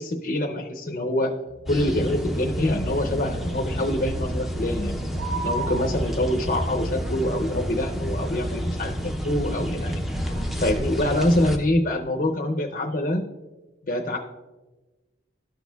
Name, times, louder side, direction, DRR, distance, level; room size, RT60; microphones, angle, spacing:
voice 1, 0.0-1.3 1.7-5.0 5.4-9.0 9.2-10.0 10.6-13.3 13.8-14.2, left 1 dB, 45° left, 3 dB, 0.5 m, -25 dB
sound 1, 1.5-5.7, right 2 dB, 85° right, 1.3 m, -45 dB
sound 2, 1.7-11.6, equal, ahead, 0.5 m, -29 dB
sound 3, 5.2-6.6 10.3-10.6, right 3 dB, 45° right, 1.1 m, -32 dB
13.0 x 6.2 x 2.3 m, 1.2 s
head